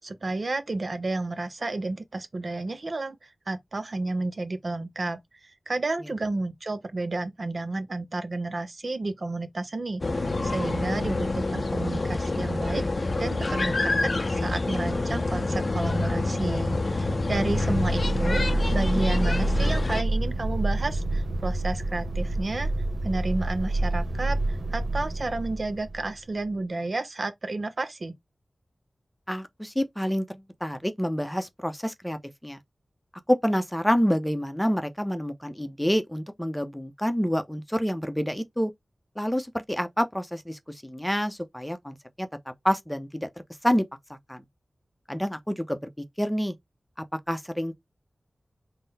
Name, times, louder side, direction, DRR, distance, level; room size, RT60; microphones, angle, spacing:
voice 1, 0.0-18.4 18.7-22.7 23.0-28.1, right 2 dB, 60° right, 0.5 m, -31 dB
sound 1, 10.0-20.0, left 2 dB, 55° left, 0.5 m, -27 dB
sound 2, 17.1-26.4, right 2 dB, 85° right, 0.8 m, -28 dB
voice 2, 29.3-32.6 33.3-38.7 39.2-42.3 42.6-43.3 43.6-43.8 44.3-44.4 45.1-45.9 46.2-46.5 47.1-47.8, equal, 10° left, 0.6 m, -28 dB
3.8 x 2.1 x 4.0 m
cardioid pair, 50°, 0 cm